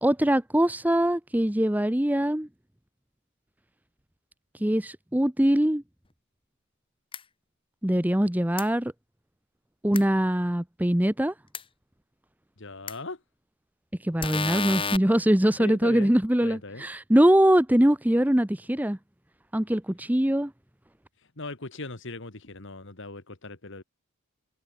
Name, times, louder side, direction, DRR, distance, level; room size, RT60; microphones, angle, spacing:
voice 1, 0.0-2.5 4.6-5.8 7.8-8.9 9.8-11.3 14.0-19.0 19.5-20.5, right 1 dB, 5° right, 0.8 m, -22 dB
sound 1, 7.1-7.2 8.6-8.7 9.9-10.0 11.5-11.6 12.9-13.0 14.2-15.0, left 5 dB, 25° left, 1.5 m, -30 dB
voice 2, 12.6-13.2 15.6-16.1 16.4-16.8 21.2-23.8, left 2 dB, 55° left, 2.0 m, -39 dB
head